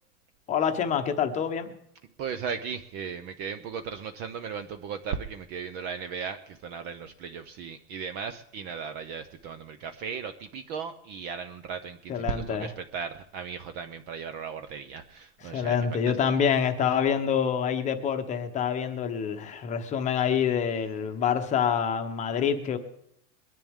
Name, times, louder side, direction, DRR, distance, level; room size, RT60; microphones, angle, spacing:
voice 1, 0.5-1.7 12.1-12.7 15.4-22.8, left 7 dB, 20° left, 7 dB, 0.9 m, -26 dB
voice 2, 2.2-15.8, right 6 dB, 25° right, 9 dB, 0.5 m, -36 dB
22.5 x 10.5 x 3.6 m, 0.72 s
supercardioid pair, 165°, 37 cm